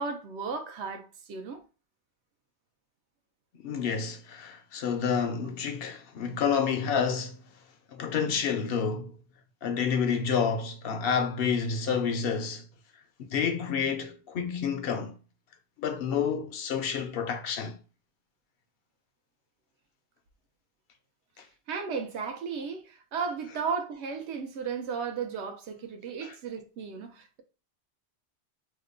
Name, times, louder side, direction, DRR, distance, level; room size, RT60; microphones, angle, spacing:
voice 1, 0.0-1.6 21.7-27.4, right 5 dB, 75° right, 0.9 m, -35 dB
voice 2, 3.6-7.4 7.9-9.1 9.6-12.6 13.3-15.1 15.8-17.8 26.2-26.3, left 6 dB, 65° left, 0.7 m, -29 dB
2.8 x 2.2 x 3.7 m
omnidirectional pair, 1.2 m